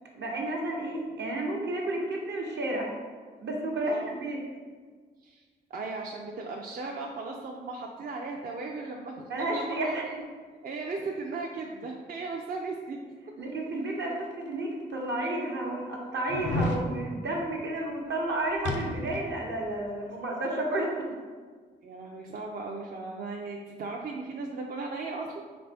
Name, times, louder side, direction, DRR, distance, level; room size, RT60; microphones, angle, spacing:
voice 1, 0.1-2.9 3.4-4.4 9.3-10.0 13.4-21.1, right 1 dB, 70° right, -1 dB, 0.9 m, -31 dB
voice 2, 5.7-10.1 10.6-13.0 21.8-25.4, right 3 dB, 50° right, 0 dB, 0.5 m, -37 dB
sound 1, 14.3-14.4 15.1-15.2 16.3-16.8 18.6-19.3 19.6-19.7, left 2 dB, 75° left, 0.5 m, -31 dB
4.0 x 3.3 x 3.4 m, 1.5 s
supercardioid pair, 55°, 19 cm